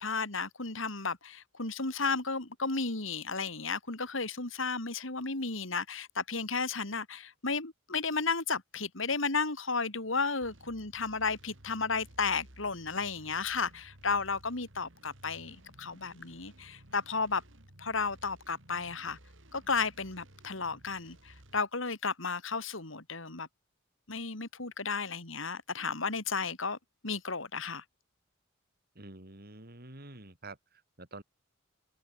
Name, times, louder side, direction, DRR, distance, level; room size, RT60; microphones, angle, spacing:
voice 1, 0.0-17.4 17.8-19.2 19.5-23.5 24.1-26.8 27.0-27.8, left 4 dB, 70° left, 3.1 m, -33 dB
sound 1, 10.4-21.6, right 1 dB, 65° right, 4.5 m, -56 dB
voice 2, 28.9-30.6 31.0-31.2, right 2 dB, 50° right, 3.5 m, -47 dB
head